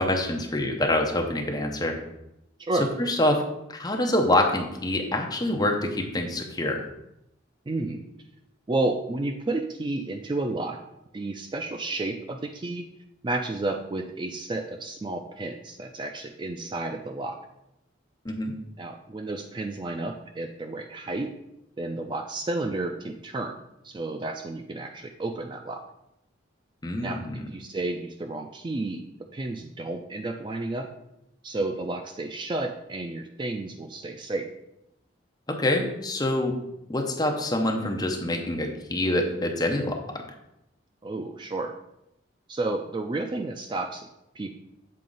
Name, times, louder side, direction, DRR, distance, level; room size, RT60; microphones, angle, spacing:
voice 1, 0.0-2.0 3.0-3.4 3.7-6.9 18.2-18.5 26.8-27.5 35.5-36.5 36.9-40.2, left 1 dB, 20° left, 2 dB, 0.7 m, -26 dB
voice 2, 7.7-8.0 8.7-10.8 11.1-12.9 13.2-17.4 18.8-21.3 21.8-23.6 23.8-25.8 27.0-27.2 27.5-29.0 29.3-30.9 31.4-34.5 41.0-41.7 42.5-44.1 44.3-44.5, right 2 dB, 25° right, 5 dB, 0.3 m, -31 dB
7.5 x 4.2 x 3.9 m, 0.84 s
head